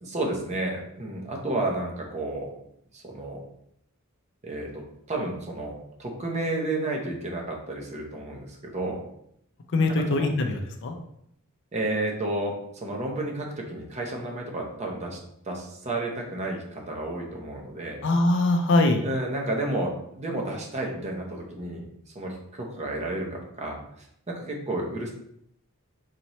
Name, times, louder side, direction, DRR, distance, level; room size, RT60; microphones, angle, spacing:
voice 1, 0.0-2.5 2.9-3.4 4.4-9.0 11.7-15.2 15.4-18.0 19.0-21.9 22.1-23.8 24.3-25.1, right 2 dB, 30° right, 0 dB, 0.7 m, -31 dB
voice 2, 9.7-11.0 18.0-19.0, left 2 dB, 55° left, 4 dB, 0.5 m, -22 dB
4.1 x 3.0 x 3.0 m, 0.73 s
head